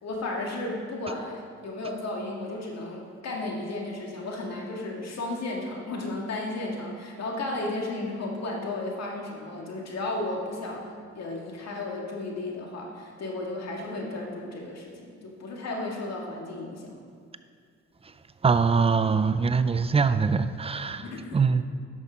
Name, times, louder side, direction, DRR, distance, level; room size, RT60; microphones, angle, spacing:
voice 1, 0.0-17.0 21.0-21.5, left 2 dB, 60° left, -1 dB, 2.0 m, -34 dB
voice 2, 18.4-21.6, right 5 dB, 20° right, 12 dB, 0.4 m, -23 dB
11.0 x 6.2 x 5.1 m, 2.1 s
cardioid pair, 90°, 30 cm